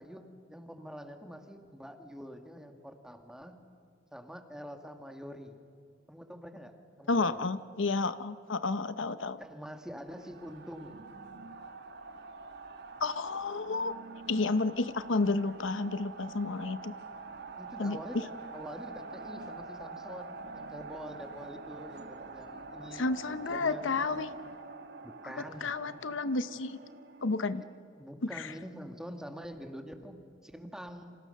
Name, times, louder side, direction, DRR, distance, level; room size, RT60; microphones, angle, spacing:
voice 1, 0.0-3.6 4.1-5.6 6.1-7.4 9.4-11.1 17.6-24.2 25.0-25.7 28.0-31.2, equal, 5° right, 5 dB, 1.8 m, -46 dB
voice 2, 7.1-9.4 13.0-13.9 14.3-16.9 17.8-18.0 22.9-24.3 25.6-26.8 27.2-27.6 28.2-28.5, left 3 dB, 70° left, 13 dB, 0.8 m, -31 dB
sound 1, 10.1-27.8, right 3 dB, 55° right, 1.5 m, -46 dB
29.5 x 27.0 x 6.6 m, 2.4 s
head